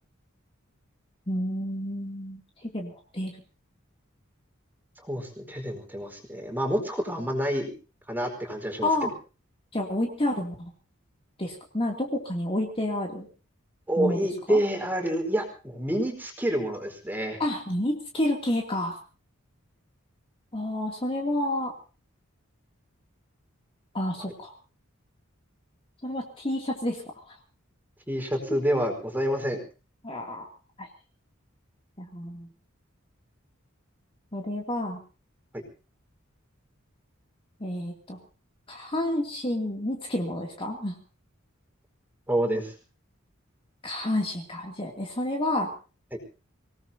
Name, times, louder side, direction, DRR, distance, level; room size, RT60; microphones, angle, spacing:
voice 1, 1.3-3.3 8.8-9.1 9.7-10.7 11.4-13.3 14.0-14.2 14.5-14.6 17.4-19.0 20.5-21.7 23.9-24.5 26.0-27.0 30.0-30.5 30.8-30.9 32.0-32.5 34.3-35.0 37.6-38.2 38.7-40.9 43.8-45.7, left 1 dB, 25° left, 1 dB, 2.8 m, -29 dB
voice 2, 5.1-7.7 8.1-8.9 13.9-17.4 28.1-29.6 35.5-35.6 42.3-42.7 46.1-46.2, equal, 10° right, 4 dB, 4.5 m, -28 dB
26.0 x 18.5 x 2.8 m, 0.35 s
head